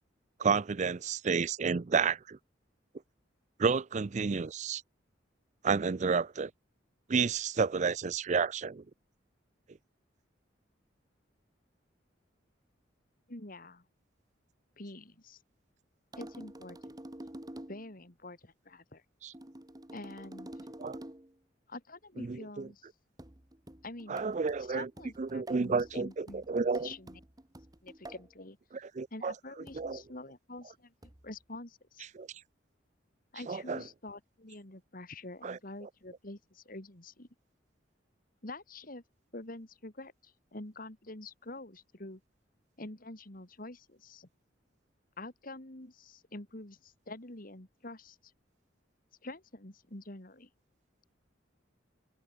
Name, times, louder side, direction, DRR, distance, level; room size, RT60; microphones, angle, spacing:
voice 1, 0.4-2.4 3.6-4.8 5.6-6.5 7.1-8.8 19.2-19.3 20.8-21.0 22.3-22.7 24.1-24.9 25.2-26.9 29.0-29.3 29.8-30.0 32.2-32.3 33.5-33.8 35.4-35.6, right 5 dB, 40° right, 0.5 m, -30 dB
voice 2, 13.3-13.8 14.8-15.4 16.2-17.0 17.7-19.0 19.9-20.7 21.7-22.9 23.8-24.2 24.6-26.5 26.8-27.2 27.8-28.6 29.1-30.9 31.2-32.1 33.3-37.3 38.4-39.0 39.3-42.2 42.8-44.3 45.2-48.3 49.2-50.5, left 2 dB, 50° left, 2.7 m, -46 dB
sound 1, 16.1-17.9 19.3-21.4 23.2-28.3 29.7-30.0 31.0-31.3, right 1 dB, 20° right, 1.4 m, -48 dB
head